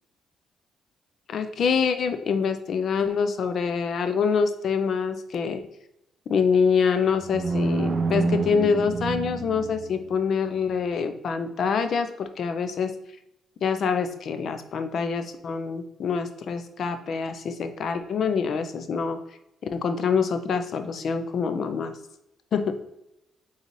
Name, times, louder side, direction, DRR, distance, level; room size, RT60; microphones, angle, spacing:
voice 1, 1.3-5.6 6.3-12.9 13.6-19.2 19.7-21.9 22.5-22.8, left 6 dB, 60° left, 9 dB, 0.5 m, -25 dB
sound 1, 7.2-10.2, right 4 dB, 50° right, 0.4 m, -28 dB
4.0 x 3.9 x 3.1 m, 0.85 s
cardioid pair, 90°, 0 cm